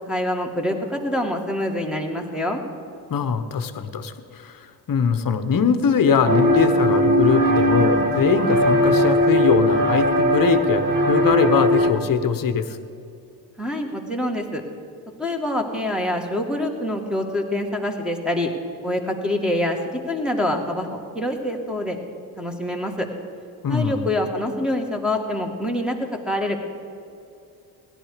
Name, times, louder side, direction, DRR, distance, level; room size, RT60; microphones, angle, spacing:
voice 1, 0.1-2.6 13.6-14.6 15.2-18.5 18.8-20.9 21.1-22.0 22.4-23.1 23.7-26.7, left 1 dB, ahead, 2 dB, 2.1 m, -25 dB
voice 2, 3.1-12.8 23.6-24.1, left 6 dB, 45° left, 10 dB, 1.1 m, -22 dB
sound 1, 6.3-11.9, equal, 40° right, 2.5 m, -19 dB
16.5 x 11.0 x 5.1 m, 2.6 s
supercardioid pair, 55°, 47 cm